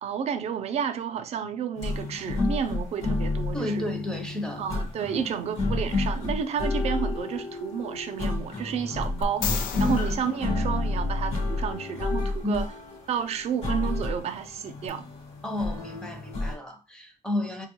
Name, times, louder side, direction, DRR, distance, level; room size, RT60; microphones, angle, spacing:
voice 1, 0.0-3.9 4.6-12.7 13.1-15.0, right 7 dB, 50° right, 0.4 m, -31 dB
sound 1, 1.8-16.5, left 2 dB, 45° left, 1.1 m, -30 dB
voice 2, 3.5-4.7 9.8-10.0 12.4-12.6 15.4-17.7, left 1 dB, 5° left, 0.5 m, -31 dB
sound 2, 9.2-11.5 14.9-15.0, left 6 dB, 85° left, 0.5 m, -34 dB
3.4 x 2.2 x 3.0 m
cardioid pair, 165°, 14 cm